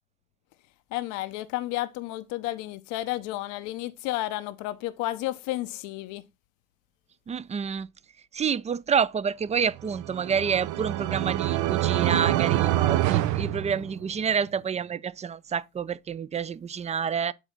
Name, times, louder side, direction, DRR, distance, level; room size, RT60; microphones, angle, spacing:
voice 1, 0.9-6.2, left 16 dB, 85° left, 0.6 m, -32 dB
voice 2, 7.3-7.9 8.3-17.3, right 7 dB, 25° right, 0.4 m, -28 dB
sound 1, 9.8-14.3, right 14 dB, 80° right, 0.5 m, -26 dB
8.0 x 2.7 x 6.0 m
supercardioid pair, 80°, 30 cm